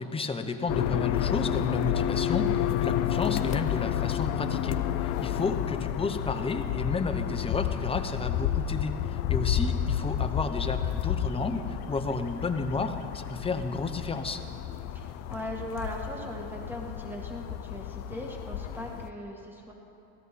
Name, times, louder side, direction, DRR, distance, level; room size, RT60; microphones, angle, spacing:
voice 1, 0.0-14.4, left 3 dB, 15° left, 6 dB, 0.8 m, -32 dB
sound 1, 0.7-19.1, left 10 dB, 80° left, 0.7 m, -30 dB
voice 2, 14.9-19.7, equal, 5° right, 0 dB, 1.9 m, -39 dB
16.5 x 14.0 x 4.2 m, 2.8 s
supercardioid pair, 110°, 39 cm